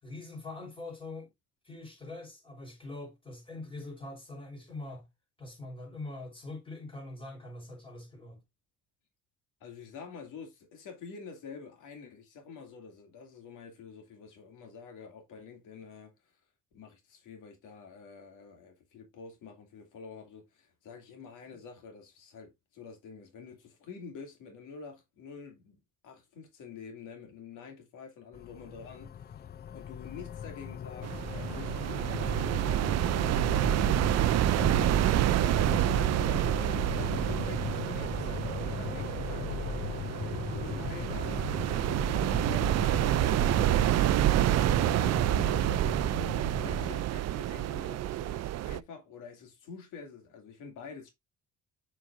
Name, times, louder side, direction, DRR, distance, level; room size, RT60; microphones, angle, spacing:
voice 1, 0.0-1.3 1.6-5.1 5.4-8.4, left 2 dB, 15° left, 4.5 m, -43 dB
voice 2, 9.6-16.3 16.7-29.4 29.7-33.0 34.0-40.0 40.5-41.5 42.2-45.9 46.6-51.1, left 5 dB, 90° left, 2.5 m, -48 dB
sound 1, 28.3-47.0, left 9 dB, 35° left, 0.4 m, -38 dB
sound 2, 31.0-48.8, right 14 dB, 60° right, 0.4 m, -28 dB
7.3 x 6.0 x 2.5 m
cardioid pair, 90°, 30 cm